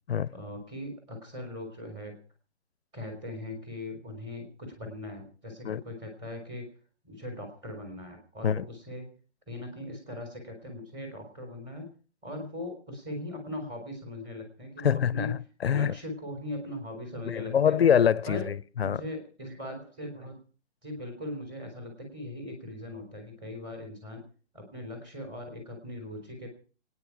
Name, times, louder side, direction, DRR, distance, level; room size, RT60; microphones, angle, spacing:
voice 1, 0.3-2.2 2.9-6.7 7.0-9.1 9.5-11.9 12.2-15.4 15.7-17.8 18.3-18.5 18.8-20.4 20.8-24.2 24.5-26.5, left 1 dB, 15° right, 3.8 m, -39 dB
voice 2, 14.8-15.9 17.3-19.0, left 8 dB, 60° left, 0.7 m, -25 dB
23.5 x 9.7 x 5.9 m
hypercardioid pair, 170°, 34 cm